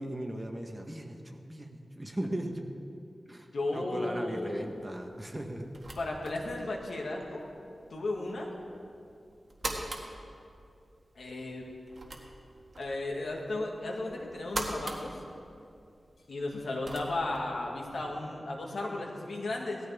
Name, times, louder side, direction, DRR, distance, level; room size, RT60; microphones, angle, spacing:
voice 1, 0.0-2.6 3.3-5.7, right 1 dB, 20° right, 3 dB, 1.2 m, -38 dB
voice 2, 3.5-4.8 6.0-7.5 7.9-8.5 11.2-11.6 12.8-15.2 16.3-19.8, left 2 dB, 80° left, -1 dB, 1.9 m, -34 dB
sound 1, 4.6-18.2, right 2 dB, 45° right, 1.7 m, -44 dB
17.5 x 13.5 x 3.5 m, 2.5 s
wide cardioid pair, 95°, 0 cm